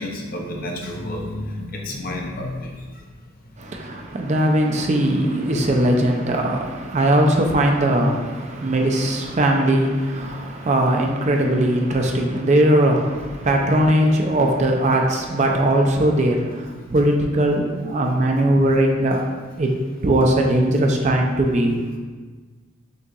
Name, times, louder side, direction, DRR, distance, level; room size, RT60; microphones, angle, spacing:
voice 1, 0.0-2.7 4.2-4.3 4.7-4.8 5.5-5.6 6.5-6.7 10.2-10.7 13.3-13.6, left 1 dB, 45° left, 0 dB, 0.6 m, -32 dB
voice 2, 3.6-19.2 19.6-19.7 20.0-21.8, right 1 dB, 35° right, 2 dB, 0.4 m, -19 dB
6.5 x 2.8 x 2.4 m, 1.4 s
head